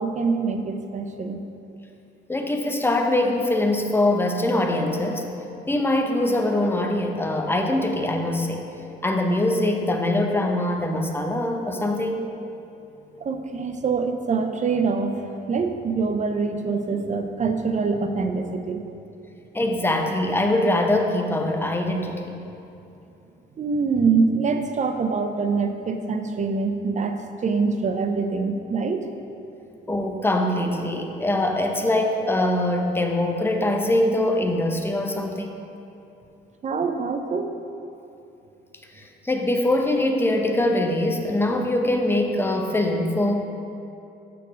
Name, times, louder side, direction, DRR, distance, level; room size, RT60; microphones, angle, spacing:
voice 1, 0.0-1.4 13.2-15.1 15.5-19.0 23.6-29.0 36.6-37.5, right 4 dB, 40° right, 7 dB, 0.5 m, -24 dB
voice 2, 2.3-5.3 5.7-8.6 9.0-12.2 19.5-22.3 29.9-35.5 38.9-43.3, left 1 dB, 10° left, 3 dB, 0.7 m, -23 dB
6.2 x 4.6 x 5.0 m, 2.8 s
cardioid pair, 90°, 20 cm